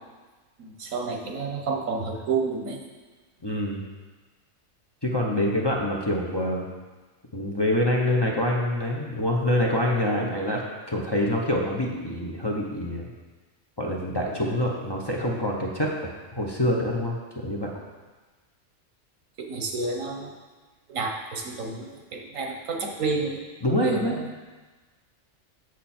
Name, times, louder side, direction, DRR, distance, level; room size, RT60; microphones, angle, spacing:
voice 1, 0.6-2.8 19.4-20.3 20.9-23.4 23.8-24.3, right 4 dB, 90° right, 1 dB, 1.5 m, -30 dB
voice 2, 3.4-3.8 5.0-6.7 7.3-13.1 13.8-15.9 16.4-17.7 23.6-24.1, left 1 dB, 20° left, -3 dB, 0.8 m, -26 dB
7.8 x 6.9 x 4.4 m, 1.3 s
omnidirectional pair, 1.3 m